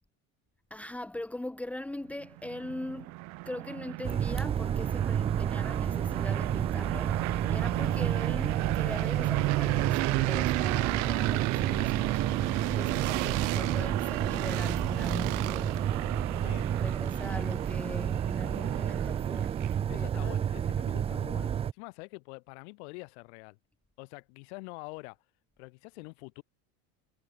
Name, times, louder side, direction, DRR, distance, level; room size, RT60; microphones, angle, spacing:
voice 1, 0.7-3.1 3.4-12.3 12.7-16.0 16.7-20.4, left 1 dB, 5° left, 3.3 m, -41 dB
sound 1, 2.2-19.4, right 26 dB, 50° right, 1.5 m, -33 dB
sound 2, 4.0-21.7, right 9 dB, 15° right, 0.5 m, -31 dB
sound 3, 11.4-20.0, right 23 dB, 90° right, 1.2 m, -41 dB
voice 2, 19.9-23.6 24.0-25.2 25.6-26.4, left 30 dB, 70° left, 3.0 m, -45 dB
cardioid pair, 160°, 35 cm